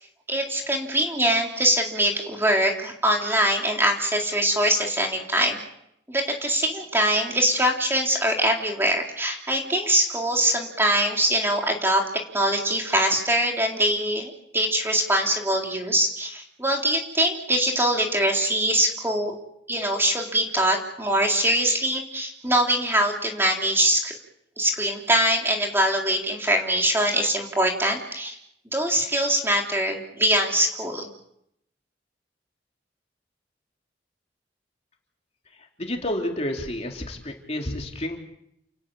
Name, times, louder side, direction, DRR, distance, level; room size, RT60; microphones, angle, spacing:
voice 1, 0.3-5.6 6.1-12.0 12.3-19.4 19.7-24.1 24.6-28.4 28.7-31.1, right 1 dB, 15° right, 1 dB, 3.3 m, -23 dB
voice 2, 35.8-38.2, left 1 dB, 35° left, 1 dB, 3.4 m, -30 dB
29.5 x 13.5 x 9.1 m, 0.76 s
head